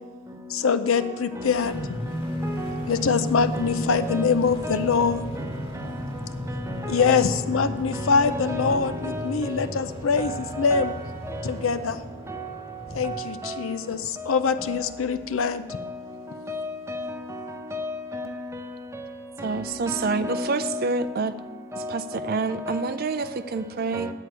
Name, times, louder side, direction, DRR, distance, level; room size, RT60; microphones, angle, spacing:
voice 1, 0.5-1.7 2.9-5.2 6.9-10.9 11.4-12.0 12.9-15.8, left 5 dB, 75° left, 0.5 m, -24 dB
sound 1, 1.6-13.3, equal, 25° left, 1.3 m, -34 dB
voice 2, 2.3-2.8 3.5-4.3 4.6-4.9 5.4-5.5 6.5-7.2 7.9-9.5 10.2-10.9 11.3-11.4 12.3-12.4 13.0-13.6 14.6-14.7 15.7-15.8 16.5-17.1 17.7-18.3 19.4-19.5 19.9-20.8 21.7-22.2 22.5-22.9 23.9-24.1, left 1 dB, 15° right, 0.8 m, -33 dB
voice 3, 19.4-21.3 21.8-24.1, right 4 dB, 45° right, 0.4 m, -27 dB
11.0 x 4.6 x 8.1 m
head